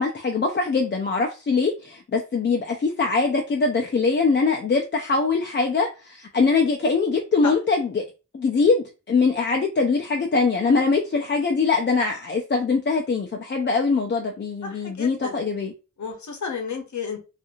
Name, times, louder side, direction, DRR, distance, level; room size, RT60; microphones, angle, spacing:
voice 1, 0.0-8.0 8.3-15.7, left 4 dB, 40° left, 0.4 m, -22 dB
voice 2, 14.6-15.4 16.0-17.2, left 5 dB, 75° left, 0.8 m, -32 dB
2.6 x 2.5 x 2.7 m
wide cardioid pair, 90°, 29 cm